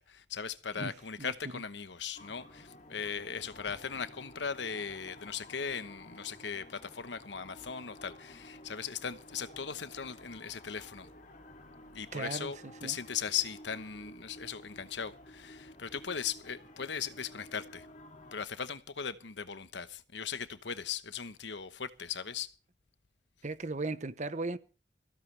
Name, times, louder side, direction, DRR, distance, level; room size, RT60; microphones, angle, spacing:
voice 1, 0.0-11.1 11.9-17.9 18.3-22.5, left 7 dB, 80° left, 1.0 m, -38 dB
sound 1, 2.2-18.4, left 1 dB, 45° left, 2.6 m, -53 dB
voice 2, 12.1-12.5 12.8-13.0 23.4-24.6, right 3 dB, 40° right, 0.8 m, -36 dB
22.5 x 15.5 x 3.3 m
head